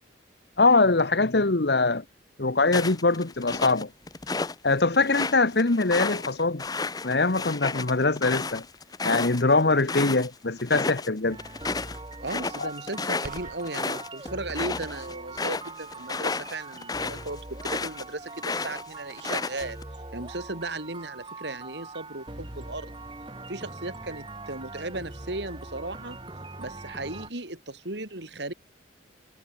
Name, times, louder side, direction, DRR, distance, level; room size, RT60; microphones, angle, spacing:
voice 1, 0.6-2.0 2.4-3.9 4.6-6.6 7.0-8.6 9.0-11.4 12.6-12.7, left 3 dB, 65° left, 1.2 m, -23 dB
sound 1, 2.7-4.6 4.9-10.3 10.6-11.1 11.4-18.0 18.4-19.8, left 4 dB, 20° left, 0.7 m, -32 dB
sound 2, 11.3-27.3, right 2 dB, 25° right, 1.9 m, -42 dB
voice 2, 12.2-19.8 20.1-23.0 23.5-26.2 26.6-28.5, right 2 dB, 70° right, 4.0 m, -36 dB
sound 3, 13.2-13.7, right 2 dB, 50° right, 2.3 m, -41 dB
head